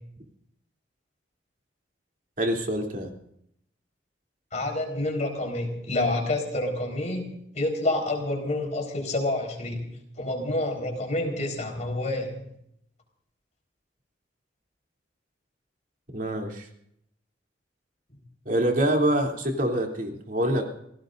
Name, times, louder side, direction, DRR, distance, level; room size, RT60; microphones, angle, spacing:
voice 1, 2.4-3.1 16.1-16.7 18.4-20.7, right 1 dB, 50° right, 1 dB, 3.2 m, -25 dB
voice 2, 4.5-7.3 7.5-9.9 10.2-12.4, left 2 dB, 40° left, 2 dB, 4.5 m, -28 dB
28.0 x 18.0 x 2.6 m, 0.73 s
head